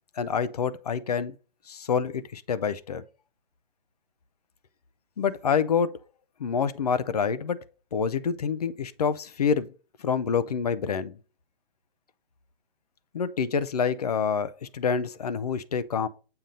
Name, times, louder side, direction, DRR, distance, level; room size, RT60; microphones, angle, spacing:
voice 1, 0.2-1.3 1.7-3.0 5.2-6.0 6.4-7.6 7.9-9.7 10.0-11.2 13.1-16.1, left 6 dB, 40° left, 0.4 m, -27 dB
7.5 x 2.7 x 5.0 m
hypercardioid pair, 160°, 30 cm